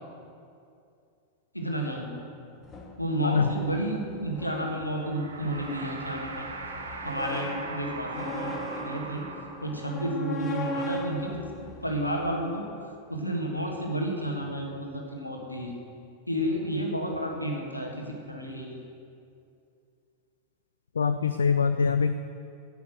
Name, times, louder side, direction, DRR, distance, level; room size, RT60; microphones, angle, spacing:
voice 1, 1.5-2.1 3.0-6.5 7.0-9.2 9.6-12.6 13.1-15.7 16.3-18.8, right 1 dB, 85° left, 0 dB, 1.8 m, -31 dB
sound 1, 2.6-12.6, equal, 25° left, 1.3 m, -39 dB
sound 2, 4.9-10.0, right 3 dB, 70° right, 1.1 m, -40 dB
voice 2, 21.0-22.1, left 6 dB, 70° left, 10 dB, 0.4 m, -24 dB
10.5 x 8.1 x 7.8 m, 2.5 s
figure-of-eight pair, 90°, 0 cm